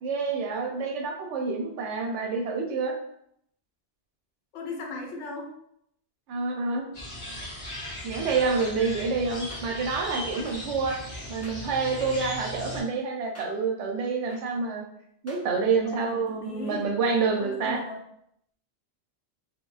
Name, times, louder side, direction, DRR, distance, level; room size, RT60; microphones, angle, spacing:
voice 1, 0.0-2.9 6.3-6.9 8.0-11.0 11.3-14.8 15.2-17.8, right 4 dB, 85° right, 2 dB, 0.9 m, -28 dB
voice 2, 4.5-5.5 15.8-16.9 17.4-18.0, left 3 dB, 85° left, 0 dB, 1.0 m, -37 dB
sound 1, 6.9-12.8, left 1 dB, 60° left, 1.3 m, -38 dB
sound 2, 8.5-8.7 9.5-9.6 10.5-10.6 11.4-11.6 12.4-12.5 13.3-13.5 14.3-14.4 15.3-15.4, equal, 25° left, 0.4 m, -46 dB
3.1 x 2.2 x 2.3 m, 0.73 s
omnidirectional pair, 1.2 m